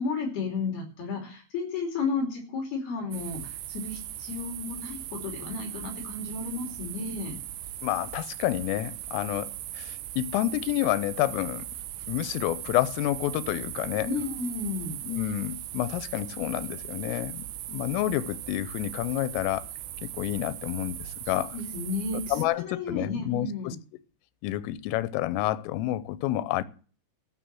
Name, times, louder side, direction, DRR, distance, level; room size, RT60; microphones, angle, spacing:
voice 1, 0.0-7.4 14.0-15.0 21.2-23.8, left 4 dB, 55° left, 4.5 m, -33 dB
sound 1, 3.1-22.5, right 13 dB, 75° right, 2.7 m, -39 dB
voice 2, 7.8-9.5 9.8-11.7 12.1-14.1 15.0-19.6 20.2-21.0 21.3-21.5 22.3-23.7 24.4-26.6, left 15 dB, 90° left, 3.4 m, -29 dB
13.5 x 6.8 x 7.6 m
omnidirectional pair, 5.7 m